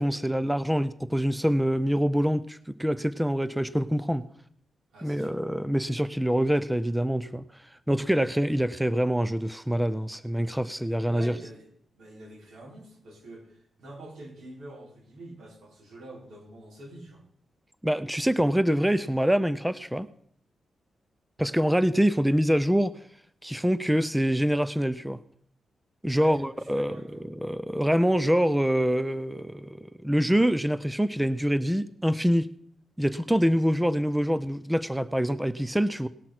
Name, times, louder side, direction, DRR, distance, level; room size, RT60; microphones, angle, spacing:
voice 1, 0.0-4.3 5.0-7.4 7.9-11.3 17.8-20.1 21.4-22.9 23.4-25.2 26.0-32.5 33.0-36.1, equal, 5° right, 14 dB, 0.5 m, -25 dB
voice 2, 4.9-5.4 11.1-11.7 11.9-17.2 21.5-21.6 26.1-27.2, right 1 dB, 90° right, -3 dB, 5.3 m, -46 dB
18.5 x 6.2 x 6.0 m, 0.64 s
cardioid pair, 110°, 0 cm